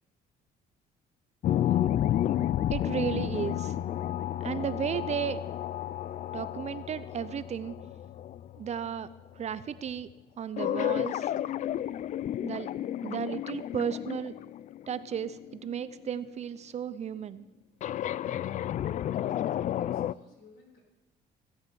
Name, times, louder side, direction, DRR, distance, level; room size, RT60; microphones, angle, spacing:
sound 1, 1.4-8.9 10.6-16.1 17.8-20.1, left 11 dB, 45° left, 0.4 m, -31 dB
voice 1, 2.7-3.8 4.4-5.4 6.3-7.8 8.6-10.1 10.4-11.3 12.4-12.7 13.0-14.3 14.9-17.5, right 8 dB, 40° right, 14 dB, 0.6 m, -34 dB
voice 2, 19.8-20.8, left 3 dB, 70° left, 1 dB, 4.6 m, -58 dB
16.0 x 7.9 x 6.9 m, 1.0 s
cardioid pair, 110°, 17 cm